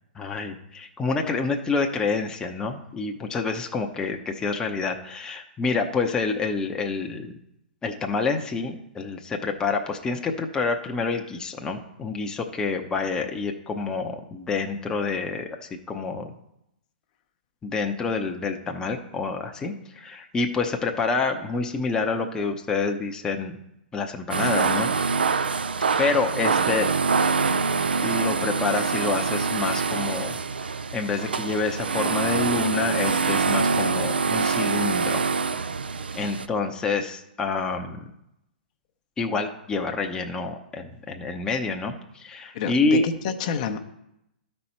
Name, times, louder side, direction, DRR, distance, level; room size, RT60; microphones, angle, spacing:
voice 1, 0.1-7.3 7.8-15.6 15.9-16.3 17.6-23.6 23.9-24.9 26.0-26.9 28.0-30.3 30.9-35.2 36.2-38.1 39.2-43.0, left 4 dB, 15° left, 3 dB, 0.7 m, -27 dB
sound 1, 24.3-36.5, right 4 dB, 75° right, 0.4 m, -25 dB
voice 2, 42.5-43.8, left 7 dB, 45° left, 6 dB, 0.7 m, -28 dB
12.5 x 4.3 x 4.4 m, 0.83 s
figure-of-eight pair, 115°, 5 cm